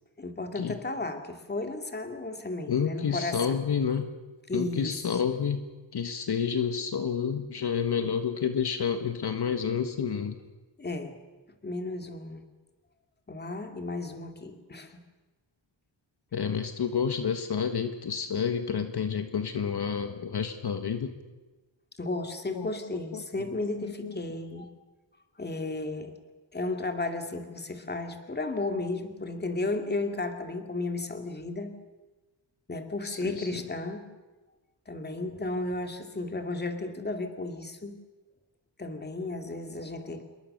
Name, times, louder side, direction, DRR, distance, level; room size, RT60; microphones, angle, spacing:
voice 1, 0.2-3.6 4.5-4.9 10.8-11.1 11.6-12.4 13.3-15.0 22.0-24.7 25.4-26.1 26.5-31.7 32.7-34.0 34.9-38.0 38.8-40.2, left 2 dB, 20° left, 5 dB, 2.3 m, -34 dB
voice 2, 2.7-4.1 4.5-5.6 5.9-10.4 16.3-21.1 22.5-23.5 23.8-24.2 33.0-33.6, left 7 dB, 60° left, 7 dB, 1.6 m, -30 dB
27.5 x 22.0 x 6.7 m, 1.2 s
wide cardioid pair, 165°, 45 cm